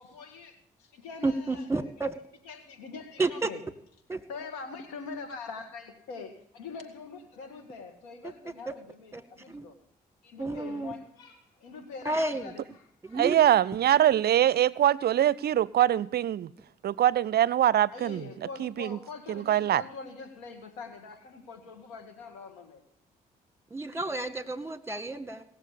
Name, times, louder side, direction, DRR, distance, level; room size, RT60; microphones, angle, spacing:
voice 1, 0.0-1.9 2.5-3.6 4.3-9.7 10.2-13.3 17.9-22.8, left 4 dB, 90° left, 6 dB, 2.1 m, -44 dB
voice 2, 1.2-2.2 3.2-3.5 4.1-4.2 8.7-8.8 9.1-9.2 9.5-9.7 10.4-10.9 12.1-12.5 13.0-13.4 23.7-25.5, right 2 dB, 15° right, 11 dB, 2.0 m, -31 dB
voice 3, 13.1-16.5 16.8-18.2 18.6-19.0 19.3-19.8, right 11 dB, 60° right, 23 dB, 0.5 m, -23 dB
18.5 x 7.1 x 8.4 m, 0.67 s
hypercardioid pair, 50°, 19 cm